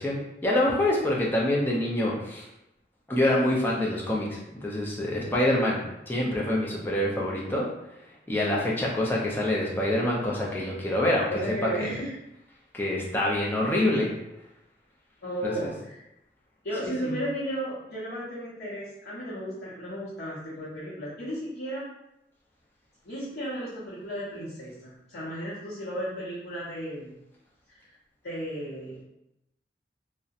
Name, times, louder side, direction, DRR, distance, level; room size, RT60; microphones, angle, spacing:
voice 1, 0.0-2.4 3.1-7.7 8.3-11.3 11.8-11.9 12.7-14.1 15.4-15.5 16.8-17.1, left 1 dB, 10° left, -4 dB, 0.4 m, -26 dB
voice 2, 11.3-12.1 15.2-16.0 16.6-21.8 23.0-27.1 27.7-27.8 28.2-29.0, equal, 80° left, -10 dB, 0.7 m, -34 dB
2.6 x 2.0 x 2.4 m, 0.85 s
head